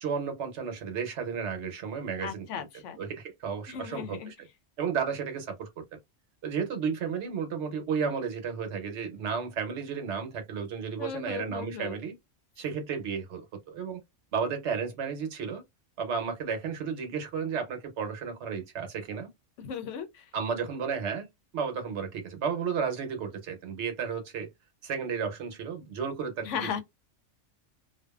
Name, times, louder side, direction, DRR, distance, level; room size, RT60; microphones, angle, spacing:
voice 1, 0.0-2.7 3.0-4.5 4.8-5.8 6.4-12.1 12.6-14.0 14.3-15.6 16.0-19.3 20.3-21.3 21.5-24.5 24.8-26.7, right 6 dB, 70° right, 1.0 m, -33 dB
voice 2, 2.2-3.0 3.7-4.3 11.0-12.0 19.6-20.2 26.4-26.8, left 7 dB, 90° left, 0.9 m, -36 dB
2.5 x 2.2 x 2.3 m
omnidirectional pair, 1.2 m